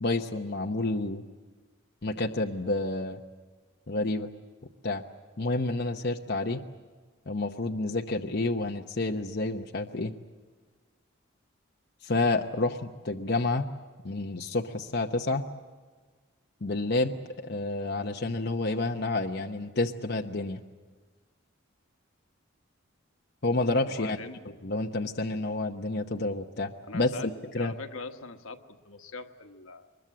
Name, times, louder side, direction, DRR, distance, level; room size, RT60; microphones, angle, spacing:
voice 1, 0.0-1.2 2.0-3.2 3.9-4.3 4.8-5.0 5.4-6.6 7.3-10.1 12.0-13.7 14.0-15.4 16.6-17.2 17.4-20.6 23.4-24.2 24.4-27.1 27.5-27.7, left 2 dB, 50° left, 3 dB, 0.9 m, -29 dB
voice 2, 23.9-24.4 26.9-27.3 27.6-28.6 28.8-29.9, left 3 dB, 85° left, 6 dB, 1.3 m, -41 dB
23.0 x 21.5 x 8.6 m, 1.4 s
head